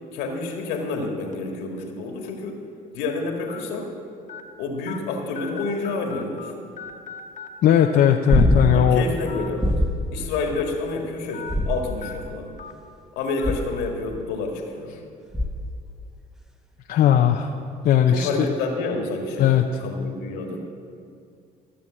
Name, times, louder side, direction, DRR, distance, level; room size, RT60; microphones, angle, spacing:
voice 1, 0.1-2.6 2.9-3.9 4.6-6.5 8.6-9.6 10.1-12.6 13.2-14.9 18.1-20.7, left 3 dB, 85° left, 2 dB, 1.9 m, -29 dB
sound 1, 1.3-1.5 2.3-2.4 3.5-3.6 4.3-4.4 4.9-5.0 5.3-6.5 6.8-7.5 7.8-7.9 9.2-9.5 9.9-10.0 11.3-11.5 12.0-12.1 12.6-12.7 13.4-13.5, left 7 dB, 45° left, 1.2 m, -38 dB
voice 2, 7.6-9.0 16.9-17.5 17.8-18.5 19.4-19.6, left 10 dB, 65° left, 3 dB, 0.7 m, -18 dB
sound 2, 8.3-9.0 9.6-10.1 11.5-12.2 13.4-13.9 15.3-15.8 18.2-18.3, left 1 dB, 5° right, 1.1 m, -22 dB
14.0 x 7.0 x 7.5 m, 2.4 s
supercardioid pair, 75°, 17 cm